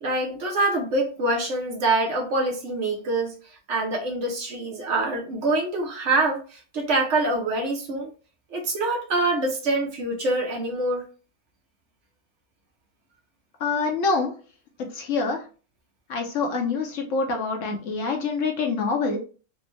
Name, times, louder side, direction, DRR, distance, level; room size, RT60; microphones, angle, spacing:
voice 1, 0.0-3.4 3.7-8.1 8.5-11.1, right 2 dB, 65° right, 0.9 m, -25 dB
voice 2, 13.6-14.3 14.9-15.4 16.1-19.2, left 4 dB, 65° left, 1.0 m, -25 dB
3.4 x 2.1 x 3.0 m
omnidirectional pair, 1.5 m